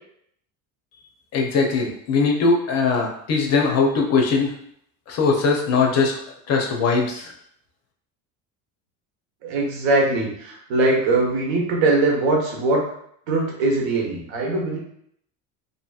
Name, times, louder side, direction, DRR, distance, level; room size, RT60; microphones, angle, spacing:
voice 1, 1.3-4.5 5.1-6.2 6.5-7.3, left 4 dB, 40° left, 1 dB, 0.5 m, -20 dB
voice 2, 9.4-12.8 13.3-14.8, right 2 dB, 70° right, -1 dB, 1.0 m, -21 dB
2.8 x 2.7 x 2.3 m, 0.68 s
cardioid pair, 130°, 38 cm